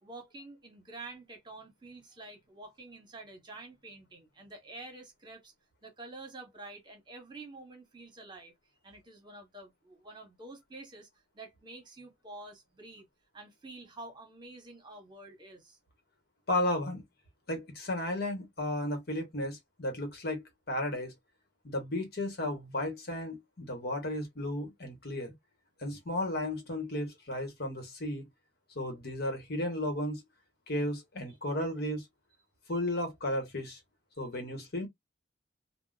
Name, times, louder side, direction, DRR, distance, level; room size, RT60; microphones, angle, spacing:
voice 1, 0.0-5.5 5.8-8.5 8.8-11.1 11.3-13.1 13.3-15.8, right 2 dB, 25° right, 1.2 m, -48 dB
voice 2, 16.5-17.0 17.5-21.1 21.6-25.3 25.8-28.3 28.7-30.2 30.7-32.0 32.7-33.8 34.2-34.9, left 1 dB, 60° left, 1.2 m, -34 dB
3.6 x 2.3 x 2.4 m
head